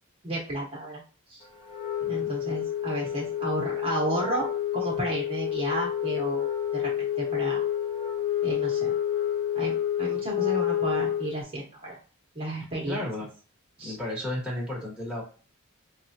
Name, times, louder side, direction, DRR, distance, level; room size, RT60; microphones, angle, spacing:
voice 1, 0.2-1.0 1.3-1.4 2.1-4.5 4.7-6.9 7.2-7.6 8.4-8.9 9.5-12.0 12.3-13.0 13.8-13.9, right 1 dB, 25° right, -4 dB, 1.1 m, -32 dB
Wind instrument woodwind instrument, 1.7-11.4, left 10 dB, 25° left, 0.5 m, -29 dB
voice 2, 12.8-13.3 13.8-15.2, left 1 dB, 5° right, -5 dB, 1.3 m, -33 dB
4.7 x 2.3 x 2.6 m, 0.37 s
head